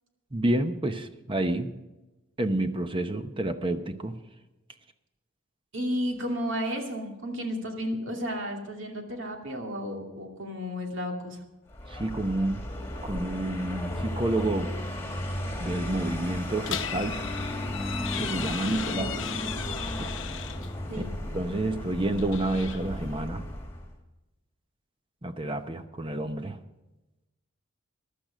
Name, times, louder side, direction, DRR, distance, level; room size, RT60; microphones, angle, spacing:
voice 1, 0.3-1.7 2.4-4.2 11.9-12.6 13.0-14.7 15.6-17.2 18.2-19.3 21.3-23.5 25.2-26.6, right 1 dB, 25° right, 8 dB, 0.8 m, -29 dB
voice 2, 5.7-11.4 18.6-19.4 20.9-21.1, equal, 60° right, 2 dB, 2.6 m, -33 dB
Vehicle, 11.7-23.9, left 1 dB, 10° left, 2.1 m, -35 dB
sound 1, 16.6-20.7 22.0-23.2, left 9 dB, 60° left, 0.9 m, -37 dB
15.5 x 12.0 x 5.0 m, 1.0 s
head